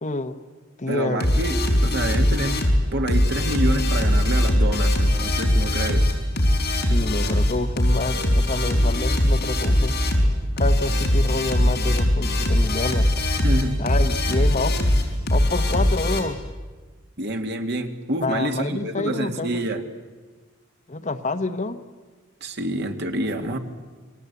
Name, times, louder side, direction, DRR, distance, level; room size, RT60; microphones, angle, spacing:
voice 1, 0.0-0.4 0.8-1.3 6.9-10.0 10.6-13.1 13.8-14.8 15.3-16.4 18.2-19.6 20.9-21.8, left 2 dB, 35° left, 9 dB, 1.1 m, -28 dB
voice 2, 0.9-2.6 2.9-6.1 13.4-13.7 17.2-19.8 22.4-23.6, right 1 dB, 55° right, 5 dB, 2.3 m, -27 dB
sound 1, 1.2-16.2, left 1 dB, 50° left, 4.5 m, -21 dB
28.5 x 22.5 x 8.3 m, 1.4 s
head